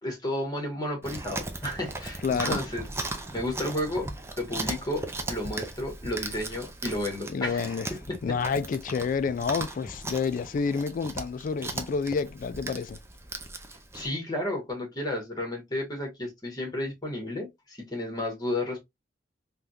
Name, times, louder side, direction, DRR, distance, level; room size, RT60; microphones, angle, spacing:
voice 1, 0.0-4.1 4.4-8.4 13.9-18.8, left 1 dB, 20° left, 1.4 m, -32 dB
Chewing mastication, 1.0-14.1, right 2 dB, 15° right, 0.5 m, -37 dB
voice 2, 2.2-2.6 7.3-7.9 8.2-13.0, left 5 dB, 50° left, 0.3 m, -29 dB
3.5 x 2.4 x 2.6 m
head